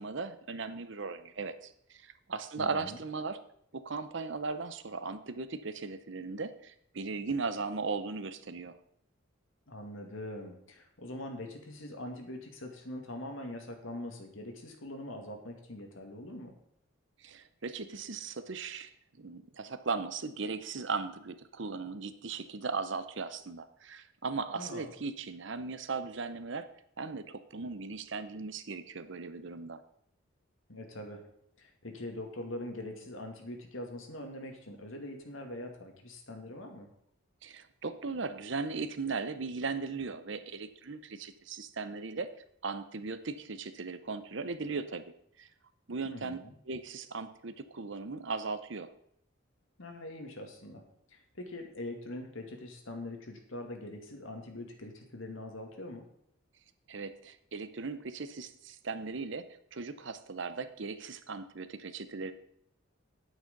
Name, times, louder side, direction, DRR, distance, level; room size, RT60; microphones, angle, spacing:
voice 1, 0.0-3.4 3.7-8.8 17.2-18.9 19.2-26.7 27.0-29.8 37.4-42.3 42.6-45.5 45.9-46.4 46.7-48.9 56.9-62.3, right 4 dB, 60° right, 11 dB, 0.8 m, -38 dB
voice 2, 2.6-3.0 9.7-16.5 24.5-24.9 30.7-31.2 31.6-36.9 46.0-46.5 49.8-50.8 51.1-56.0, left 1 dB, 70° left, 3 dB, 2.1 m, -43 dB
9.0 x 8.9 x 5.3 m, 0.71 s
head